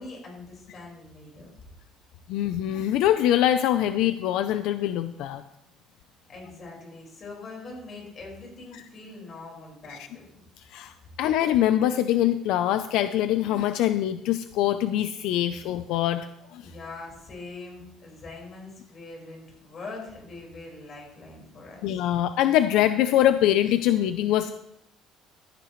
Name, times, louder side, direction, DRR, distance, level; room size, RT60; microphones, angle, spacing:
voice 1, 0.0-1.5 6.3-10.4 16.6-21.9, left 3 dB, 35° left, -1 dB, 5.0 m, -42 dB
voice 2, 2.3-5.4 8.7-8.8 9.9-10.0 10.7-16.3 16.5-16.7 21.8-24.6, left 12 dB, 70° left, 10 dB, 0.5 m, -23 dB
15.5 x 13.0 x 3.2 m, 0.82 s
cardioid pair, 155°, 0 cm